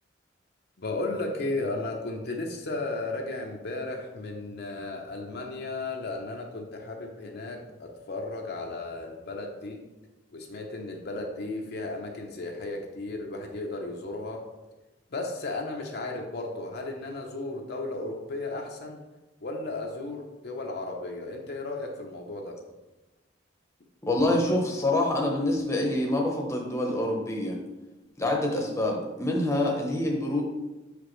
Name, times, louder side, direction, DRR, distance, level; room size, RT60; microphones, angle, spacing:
voice 1, 0.8-9.8 10.3-14.5 15.1-19.0 19.4-22.6, left 2 dB, 55° left, 1 dB, 0.7 m, -34 dB
voice 2, 24.0-27.6 28.2-30.4, left 1 dB, 15° left, 0 dB, 0.9 m, -26 dB
6.6 x 5.0 x 3.2 m, 1.1 s
head